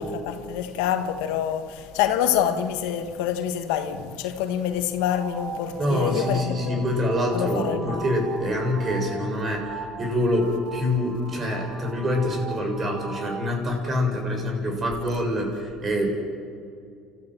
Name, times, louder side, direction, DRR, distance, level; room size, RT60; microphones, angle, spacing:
voice 1, 0.0-6.8 7.3-8.0, left 9 dB, 85° left, 1.6 m, -26 dB
sound 1, 5.0-13.4, right 4 dB, 55° right, 5.0 m, -38 dB
voice 2, 5.8-9.7 10.0-16.2, left 1 dB, 35° right, 7.3 m, -25 dB
30.0 x 14.0 x 7.8 m
supercardioid pair, 90°, 0 cm